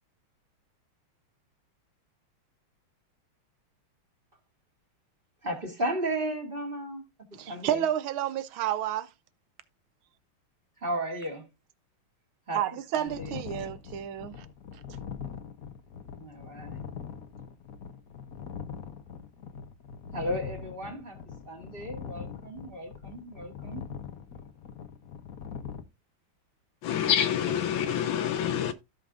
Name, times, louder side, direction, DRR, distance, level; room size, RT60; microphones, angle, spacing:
voice 1, 5.4-7.1 7.3-7.8 10.8-11.5 12.5-12.6 12.9-13.7 16.2-16.8 20.1-21.2 21.5-23.9, right 1 dB, 30° right, 1.8 m, -35 dB
voice 2, 7.3-9.1 12.5-14.5, right 11 dB, 80° right, 1.6 m, -30 dB
sound 1, 13.1-25.8, left 7 dB, 55° left, 1.1 m, -42 dB
voice 3, 26.8-28.7, left 9 dB, 80° left, 1.4 m, -27 dB
15.5 x 5.3 x 2.5 m
omnidirectional pair, 2.3 m